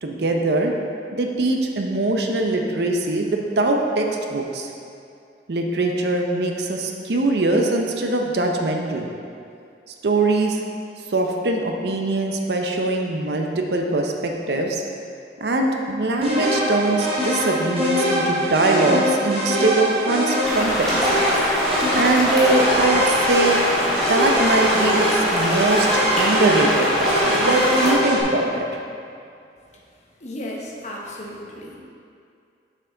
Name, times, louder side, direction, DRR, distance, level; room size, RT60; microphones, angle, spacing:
voice 1, 0.0-0.7 1.1-4.7 5.5-9.1 10.0-10.6 11.1-14.8 15.4-21.1 21.9-23.6 24.1-28.8, right 2 dB, 65° right, 2 dB, 0.7 m, -22 dB
sound 1, 16.2-28.2, equal, 30° right, 1.3 m, -23 dB
sound 2, 20.4-27.9, equal, 5° left, 1.6 m, -23 dB
voice 2, 30.2-31.8, left 1 dB, 40° left, -2 dB, 0.9 m, -34 dB
6.7 x 6.1 x 3.9 m, 2.4 s
head